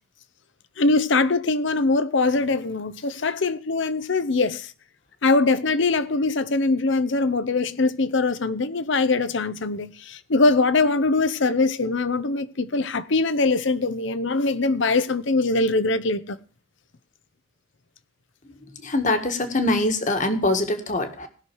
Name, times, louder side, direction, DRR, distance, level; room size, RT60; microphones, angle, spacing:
voice 1, 0.8-4.7 5.2-16.4, left 3 dB, 60° left, 0.7 m, -22 dB
voice 2, 18.7-21.3, left 2 dB, 35° left, 1.6 m, -23 dB
19.0 x 6.4 x 4.6 m
head